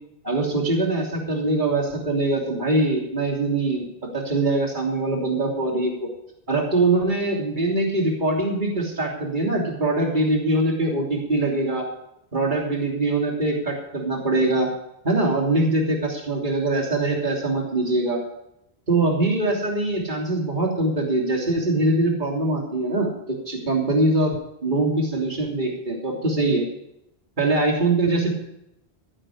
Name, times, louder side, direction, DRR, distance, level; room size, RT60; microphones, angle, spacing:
voice 1, 0.2-3.9 4.1-6.1 6.5-11.8 12.3-14.7 15.0-18.2 18.9-24.3 24.6-26.6 27.4-28.3, right 2 dB, 50° right, -1 dB, 3.3 m, -23 dB
15.0 x 11.0 x 5.0 m, 0.80 s
omnidirectional pair, 1.1 m